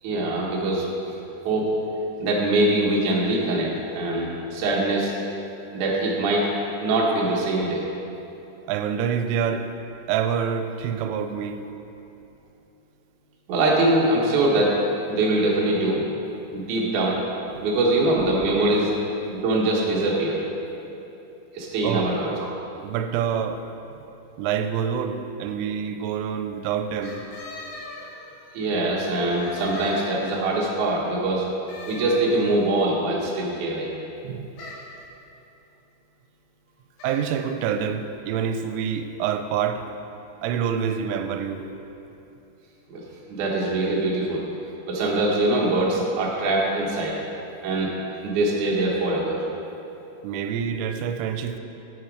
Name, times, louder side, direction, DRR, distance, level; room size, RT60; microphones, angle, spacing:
voice 1, 0.0-0.9 1.4-1.7 2.2-5.1 5.7-6.5 6.8-7.9 13.5-14.8 15.1-16.0 16.5-17.2 17.6-18.9 19.3-20.4 21.5-22.3 28.5-31.5 31.9-33.9 42.9-44.4 44.9-47.2 47.6-47.9 48.2-49.4, right 2 dB, 60° right, -4 dB, 2.1 m, -23 dB
voice 2, 8.7-9.7 10.1-11.6 21.8-22.1 22.8-23.6 24.4-27.2 34.2-34.5 37.0-39.8 40.4-41.7 50.2-51.6, right 8 dB, 85° right, 8 dB, 3.1 m, -26 dB
sound 1, 27.0-28.6 29.2-30.6 31.7-32.7 34.5-35.0 37.0-37.4, left 2 dB, 70° left, 4.2 m, -40 dB
9.4 x 9.1 x 4.7 m, 2.9 s
omnidirectional pair, 5.6 m